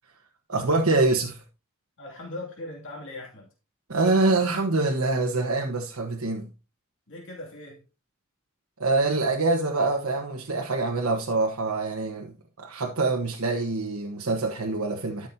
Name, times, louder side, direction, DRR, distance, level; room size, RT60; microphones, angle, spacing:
voice 1, 0.5-1.4 3.9-6.5 8.8-15.3, right 3 dB, 85° right, 1.3 m, -25 dB
voice 2, 2.0-3.5 7.1-7.8, left 2 dB, 65° left, 2.7 m, -39 dB
13.5 x 6.2 x 2.8 m
head